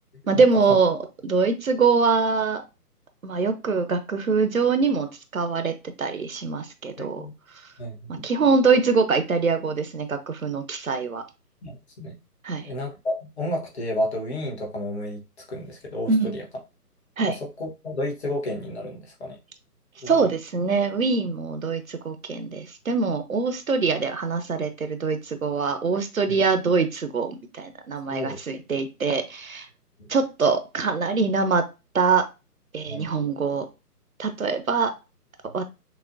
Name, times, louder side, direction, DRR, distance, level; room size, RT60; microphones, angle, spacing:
voice 1, 0.3-2.6 3.2-7.2 8.1-11.2 12.4-12.7 16.1-16.3 17.2-17.3 20.1-29.7 30.1-31.7 31.9-32.2 32.7-33.6 34.2-34.9 35.5-35.6, right 4 dB, 60° right, 8 dB, 0.7 m, -23 dB
voice 2, 7.0-7.3 7.8-8.3 11.6-12.1 12.6-15.2 15.5-16.4 17.3-19.4 20.0-20.3 26.3-26.4 28.1-28.4 30.0-30.1 32.9-33.1, left 1 dB, 40° left, 0 dB, 1.2 m, -31 dB
6.0 x 2.1 x 2.6 m, 0.27 s
figure-of-eight pair, 145°, 48 cm